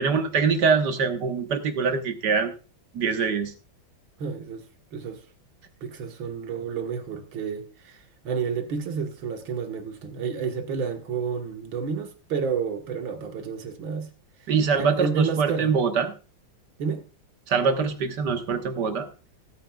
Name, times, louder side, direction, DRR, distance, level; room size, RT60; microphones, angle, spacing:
voice 1, 0.0-2.5 2.9-3.5 14.5-16.1 17.5-19.1, right 5 dB, 60° right, 1.8 m, -24 dB
voice 2, 4.2-4.6 4.9-5.2 5.8-14.1 14.4-15.7 16.8-17.0, right 6 dB, 75° right, 2.2 m, -30 dB
19.5 x 9.2 x 2.3 m
omnidirectional pair, 2.2 m